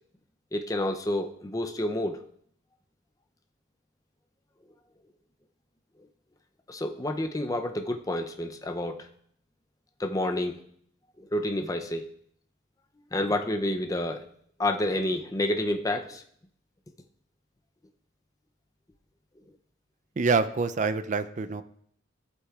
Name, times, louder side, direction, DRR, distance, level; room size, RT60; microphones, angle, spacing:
voice 1, 0.5-2.2 6.7-9.1 10.0-10.6 11.2-12.0 13.1-14.3 14.6-16.2, left 1 dB, 15° left, 5 dB, 0.5 m, -29 dB
voice 2, 20.2-21.6, right 4 dB, 40° right, 11 dB, 0.4 m, -26 dB
14.0 x 8.0 x 2.4 m, 0.65 s
head